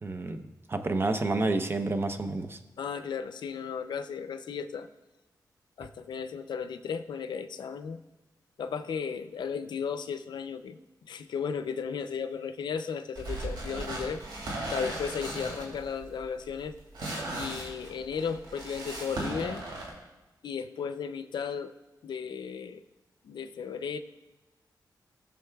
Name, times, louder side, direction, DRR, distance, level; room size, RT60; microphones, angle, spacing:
voice 1, 0.0-2.6, right 2 dB, 30° right, 8 dB, 0.7 m, -29 dB
voice 2, 2.8-4.9 5.8-8.0 8.6-10.8 11.1-14.2 14.7-16.7 17.3-19.6 20.4-21.7 22.0-22.8 23.2-24.0, left 6 dB, 80° left, 10 dB, 0.5 m, -35 dB
sound 1, 13.2-19.9, right 1 dB, 85° right, 2.7 m, -37 dB
18.0 x 7.0 x 2.3 m, 1.1 s
wide cardioid pair, 90°, 8 cm